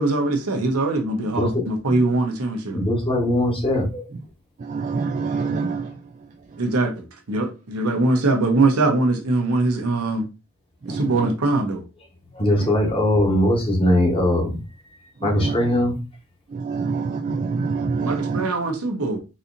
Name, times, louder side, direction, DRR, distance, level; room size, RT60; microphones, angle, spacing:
voice 1, 0.0-2.8 6.6-10.3 10.9-11.8 18.0-19.2, right 2 dB, 80° right, 0.9 m, -22 dB
voice 2, 1.4-2.0 2.7-4.1 10.9-11.0 12.3-14.6 15.2-16.0, left 1 dB, 25° left, 1.1 m, -21 dB
voice 3, 4.7-5.9 10.9-11.0 15.4-15.5 16.5-18.4, right 4 dB, 35° right, 0.3 m, -25 dB
4.1 x 2.7 x 2.6 m
head